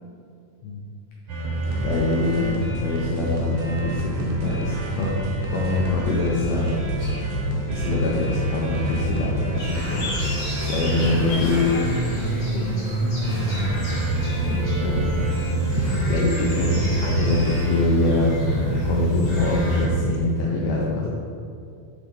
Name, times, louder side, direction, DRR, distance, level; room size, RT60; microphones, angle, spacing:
sound 1, 1.3-20.2, right 1 dB, 65° right, 1.7 m, -26 dB
sound 2, 1.6-12.6, right 2 dB, 90° right, 1.6 m, -38 dB
voice 1, 1.8-7.1 7.5-11.8 13.2-13.8 14.4-15.4 15.7-18.4 18.8-21.1, left 3 dB, 90° left, -3 dB, 1.5 m, -25 dB
sound 3, 9.6-19.9, equal, 45° left, 2.2 m, -34 dB
voice 2, 11.1-13.0 16.1-16.6 17.0-17.3, left 2 dB, 75° left, 1 dB, 1.9 m, -36 dB
6.9 x 3.8 x 4.5 m, 2.5 s
omnidirectional pair, 3.9 m